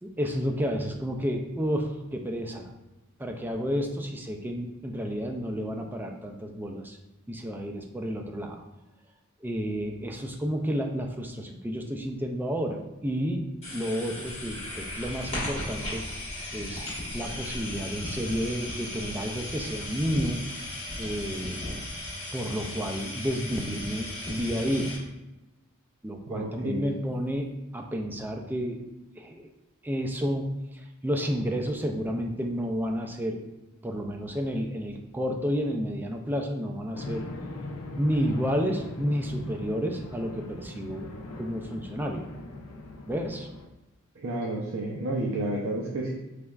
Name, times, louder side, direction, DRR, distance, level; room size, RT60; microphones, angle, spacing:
voice 1, 0.0-2.7 3.2-7.0 7.3-8.6 9.4-13.4 13.7-16.0 16.5-20.4 21.0-21.6 22.3-24.9 26.0-28.8 29.2-29.5 29.8-30.5 31.0-33.4 33.8-37.2 38.0-41.1 41.4-42.3 43.1-43.5, equal, 10° right, 3 dB, 0.3 m, -31 dB
sound 1, 13.6-25.0, left 1 dB, 30° left, 1.3 m, -36 dB
voice 2, 26.3-26.8 44.2-46.1, right 1 dB, 65° right, -3 dB, 0.6 m, -31 dB
sound 2, 36.9-43.7, left 2 dB, 80° left, 0.5 m, -40 dB
4.0 x 3.3 x 2.3 m, 0.99 s
head